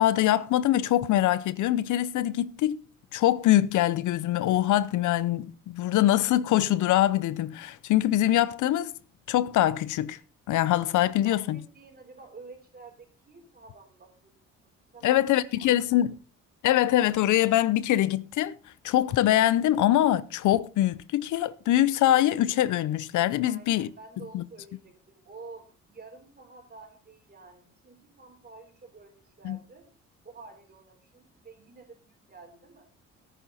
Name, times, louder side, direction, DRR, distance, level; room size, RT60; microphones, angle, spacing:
voice 1, 0.0-2.8 3.1-8.9 9.3-10.2 10.5-11.6 15.0-16.1 16.6-18.5 18.8-23.9 24.3-24.4 29.4-29.6, left 13 dB, 80° left, 0.7 m, -23 dB
voice 2, 11.0-14.4 14.6-15.2 15.6-16.1 23.4-29.9 30.2-32.9, right 4 dB, 30° right, 4.1 m, -50 dB
14.0 x 9.1 x 4.1 m
cardioid pair, 90°, 30 cm